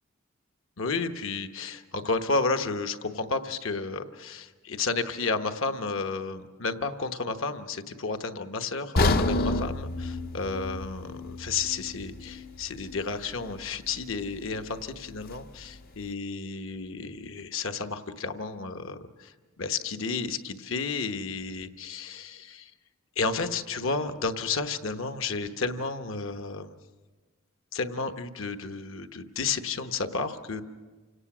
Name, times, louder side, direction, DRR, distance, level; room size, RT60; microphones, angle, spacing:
voice 1, 0.8-22.7 23.2-26.7 27.7-30.6, left 4 dB, 65° left, 8 dB, 1.1 m, -32 dB
sound 1, 9.0-13.0 13.4-13.5 14.1-14.2, left 2 dB, 45° left, 0.6 m, -29 dB
28.5 x 18.0 x 6.1 m, 1.3 s
head